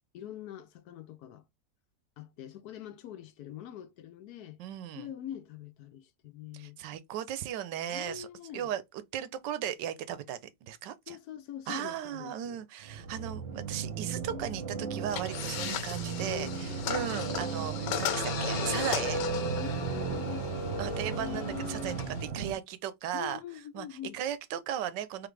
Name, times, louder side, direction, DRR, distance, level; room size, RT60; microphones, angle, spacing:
voice 1, 0.1-1.4 2.2-4.6 4.9-6.8 7.9-8.7 11.1-12.6 16.2-17.3 19.6-21.9 23.1-24.2, left 10 dB, 70° left, 1.1 m, -44 dB
voice 2, 4.6-5.1 6.5-8.3 8.5-8.8 9.1-11.2 11.7-19.2 20.8-21.9 22.2-23.4 23.7-23.9 24.1-25.3, right 10 dB, 90° right, 1.3 m, -36 dB
sound 1, 12.8-22.5, right 5 dB, 45° right, 1.0 m, -35 dB
sound 2, 15.1-22.2, left 9 dB, 85° left, 1.4 m, -37 dB
4.0 x 3.2 x 3.2 m
omnidirectional pair, 1.8 m